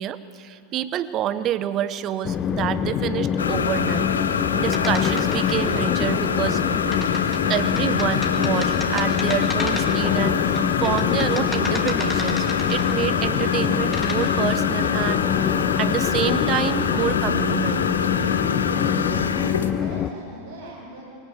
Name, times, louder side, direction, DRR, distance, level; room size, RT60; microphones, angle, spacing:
voice 1, 0.0-4.1 4.5-6.6 7.5-17.9, right 11 dB, 35° right, 15 dB, 0.9 m, -28 dB
Train, 2.2-20.1, left 9 dB, 30° left, 0.7 m, -25 dB
sound 1, 3.4-19.7, left 6 dB, 70° left, 1.0 m, -25 dB
sound 2, 4.7-5.8 6.9-10.1 10.6-13.1 13.7-14.2, left 2 dB, 10° left, 2.6 m, -34 dB
voice 2, 19.0-21.0, right 2 dB, 65° right, -7 dB, 6.6 m, -41 dB
23.0 x 18.0 x 8.3 m, 2.5 s
figure-of-eight pair, 90°, 0 cm